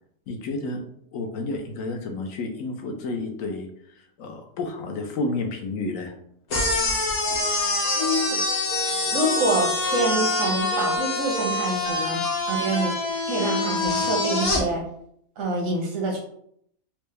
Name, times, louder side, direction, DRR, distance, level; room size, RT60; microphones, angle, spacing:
voice 1, 0.3-0.8 1.1-3.7 4.2-6.1, left 2 dB, 85° left, 4 dB, 1.1 m, -30 dB
sound 1, 6.5-14.6, left 2 dB, 60° left, 1.1 m, -25 dB
sound 2, 7.2-13.0, right 6 dB, 65° right, 0.5 m, -39 dB
voice 2, 8.0-8.4 9.0-12.2 12.5-12.9 13.3-14.8 15.4-16.2, right 1 dB, 80° right, 1 dB, 1.3 m, -26 dB
4.5 x 2.1 x 3.3 m, 0.68 s
omnidirectional pair, 1.4 m